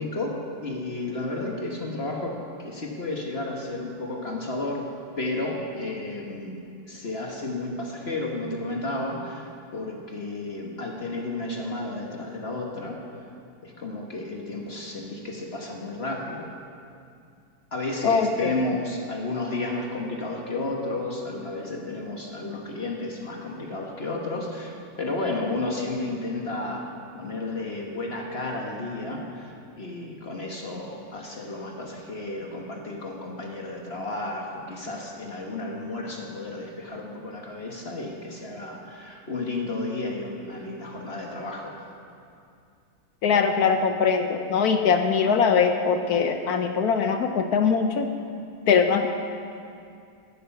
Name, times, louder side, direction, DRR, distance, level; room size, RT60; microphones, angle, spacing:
voice 1, 0.0-4.9 5.2-6.6 6.9-13.0 13.6-16.5 17.7-26.9 27.2-41.7, left 2 dB, 35° left, 0 dB, 1.2 m, -32 dB
voice 2, 18.0-18.6 43.2-48.1 48.7-49.1, left 6 dB, 65° left, 6 dB, 1.0 m, -22 dB
15.0 x 8.5 x 5.9 m, 2.5 s
omnidirectional pair, 2.2 m